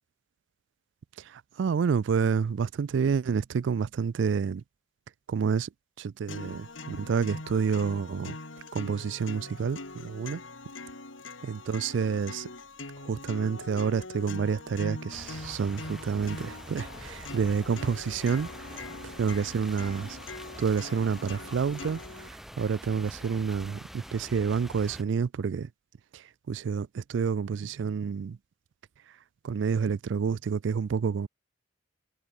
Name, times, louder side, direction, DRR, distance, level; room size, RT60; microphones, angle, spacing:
voice 1, 1.2-4.6 5.3-5.7 6.0-8.4 8.7-10.4 11.4-12.5 13.0-20.2 20.6-22.0 22.3-25.7 26.1-28.4 29.4-31.3, right 6 dB, 70° right, 0.4 m, -29 dB
sound 1, 6.3-22.3, left 3 dB, 85° left, 3.2 m, -42 dB
sound 2, 15.1-25.0, equal, ahead, 3.0 m, -45 dB
head